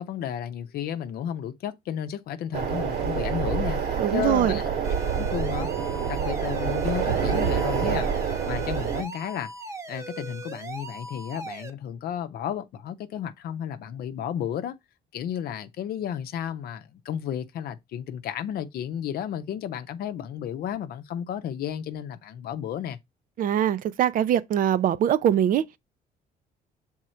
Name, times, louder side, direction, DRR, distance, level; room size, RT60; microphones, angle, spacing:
voice 1, 0.0-3.8 4.1-4.7 5.1-8.1 8.4-9.5 9.9-14.8 15.1-23.0, left 9 dB, 65° left, 0.7 m, -33 dB
sound 1, 2.5-9.0, right 7 dB, 75° right, 2.2 m, -27 dB
voice 2, 4.0-4.6 23.4-25.6, right 10 dB, 55° right, 0.5 m, -22 dB
sound 2, 4.8-11.7, right 2 dB, 20° right, 1.0 m, -39 dB
6.4 x 3.6 x 4.3 m
cardioid pair, 110°, 17 cm